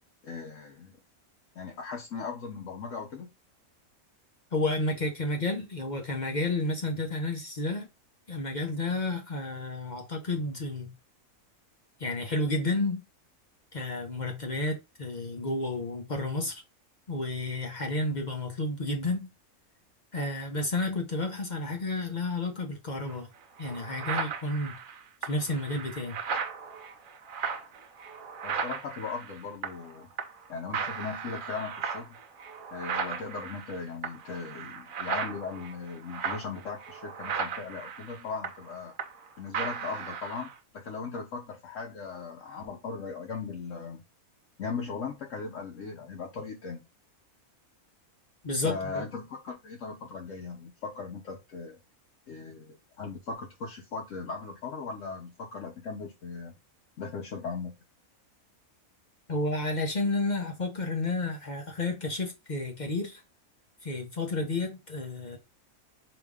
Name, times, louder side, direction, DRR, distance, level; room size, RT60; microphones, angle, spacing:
voice 1, 0.2-1.0 1.5-3.3 28.4-30.1 30.5-32.2 32.7-38.9 39.4-44.0 44.6-46.8 48.6-51.8 52.3-56.5 57.0-57.7, left 4 dB, 65° left, 1.2 m, -38 dB
voice 2, 4.5-7.9 8.3-10.9 12.0-13.0 13.7-16.6 17.1-19.3 20.1-23.3 23.6-24.8 25.2-26.2 48.4-49.0 59.3-63.2 63.8-65.4, left 2 dB, 40° left, 0.7 m, -31 dB
sound 1, 23.1-23.2 23.6-29.9 30.2-30.5 30.7-39.3 39.5-40.6, right 6 dB, 50° right, 0.7 m, -36 dB
4.9 x 2.7 x 3.5 m
omnidirectional pair, 1.5 m